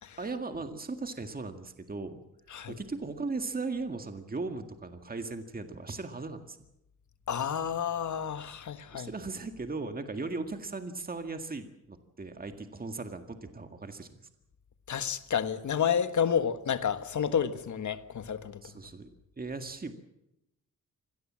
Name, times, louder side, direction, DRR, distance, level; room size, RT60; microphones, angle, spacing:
voice 1, 0.2-2.2 2.7-6.6 8.9-14.3 18.6-19.1 19.4-19.9, right 3 dB, 30° right, 1.9 m, -37 dB
voice 2, 7.3-9.1 14.9-18.6, left 8 dB, 65° left, 1.5 m, -30 dB
25.5 x 18.0 x 7.5 m
wide cardioid pair, 110°, 32 cm